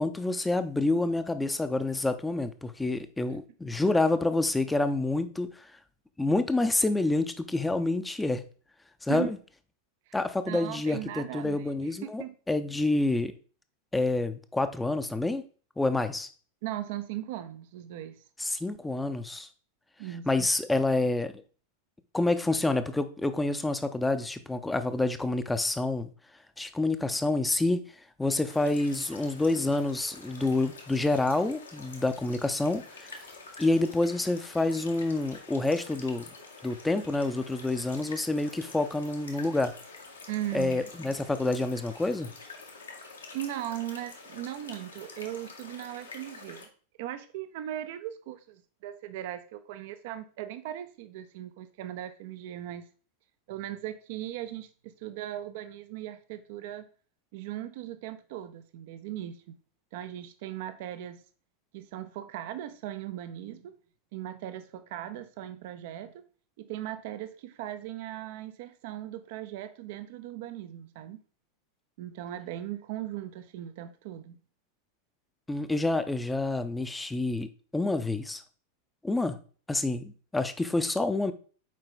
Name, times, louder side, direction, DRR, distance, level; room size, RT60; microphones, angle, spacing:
voice 1, 0.0-5.7 6.2-8.4 9.0-9.4 10.1-13.3 13.9-15.4 15.8-16.3 18.4-19.5 20.3-21.3 22.1-26.1 26.6-27.8 28.2-33.2 33.6-36.3 36.6-39.7 40.5-42.3 75.5-77.5 77.7-78.4 79.0-79.4 79.7-81.3, left 2 dB, 5° left, 11 dB, 0.6 m, -28 dB
voice 2, 10.5-12.3 16.6-18.2 20.0-20.5 40.3-40.8 43.3-46.7 47.0-52.9 53.5-56.9 57.3-59.5 59.9-61.2 61.7-63.8 64.1-66.2 66.6-71.2 72.0-74.4, right 12 dB, 50° right, 11 dB, 0.6 m, -38 dB
sound 1, 28.5-46.7, left 3 dB, 75° left, 1.4 m, -47 dB
7.4 x 4.8 x 3.8 m, 0.40 s
figure-of-eight pair, 90°, 0 cm